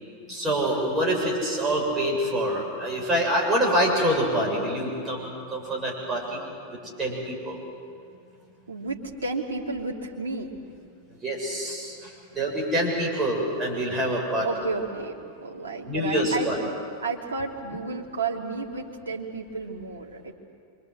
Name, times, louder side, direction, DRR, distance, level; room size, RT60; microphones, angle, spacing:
voice 1, 0.3-6.4 7.0-7.6 11.2-11.9 12.3-14.5 15.8-16.6, right 1 dB, 15° right, -2 dB, 7.3 m, -26 dB
voice 2, 8.7-10.6 14.4-16.7 17.0-20.3, right 3 dB, 70° right, -1 dB, 3.0 m, -32 dB
27.5 x 24.5 x 7.9 m, 2.4 s
figure-of-eight pair, 90°, 0 cm